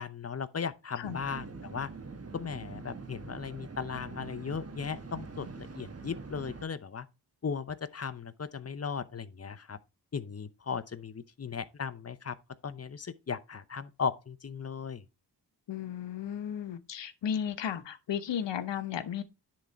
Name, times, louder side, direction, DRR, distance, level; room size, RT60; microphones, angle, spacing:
voice 1, 0.0-1.9 2.3-7.1 7.4-9.8 10.1-12.4 12.6-15.0, left 6 dB, 35° left, 0.7 m, -37 dB
sound 1, 1.0-6.6, right 4 dB, 35° right, 1.2 m, -44 dB
voice 2, 15.7-19.2, left 8 dB, 90° left, 0.9 m, -34 dB
10.5 x 3.8 x 4.3 m
cardioid pair, 65°, 42 cm